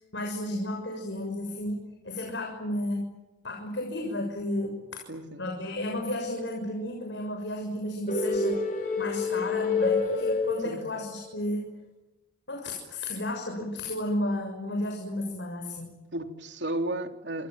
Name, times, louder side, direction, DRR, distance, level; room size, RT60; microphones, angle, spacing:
voice 1, 0.1-3.1 3.4-5.0 5.4-8.7 9.0-11.7 12.5-15.9, left 1 dB, 80° left, 2 dB, 6.6 m, -33 dB
voice 2, 5.1-5.4 10.6-10.9 16.1-17.5, right 1 dB, 80° right, 6 dB, 3.3 m, -33 dB
Laba Daba Dub (Flute), 8.1-11.3, left 3 dB, 45° left, 3.7 m, -27 dB
28.0 x 27.5 x 7.6 m, 1.0 s
head